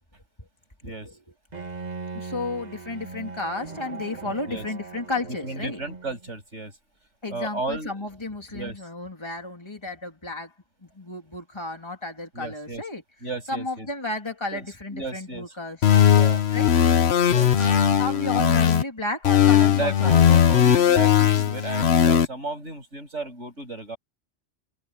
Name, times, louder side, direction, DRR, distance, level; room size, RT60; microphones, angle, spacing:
voice 1, 0.8-1.1 2.1-5.8 7.2-10.5 10.8-13.0 13.5-15.8 16.5-16.7 17.6-20.3, left 2 dB, 20° left, 3.4 m, -33 dB
Bowed string instrument, 1.5-6.3, right 4 dB, 35° right, 2.8 m, -39 dB
voice 2, 4.2-4.7 5.4-6.7 7.3-8.1 8.5-8.8 12.3-12.8 13.2-13.9 14.5-14.6 14.9-15.5 16.1-16.4 17.3-17.5 19.7-24.0, right 3 dB, 75° right, 8.3 m, -34 dB
sound 1, 15.8-18.8 19.2-22.3, left 9 dB, 65° left, 1.2 m, -18 dB
omnidirectional pair, 1.2 m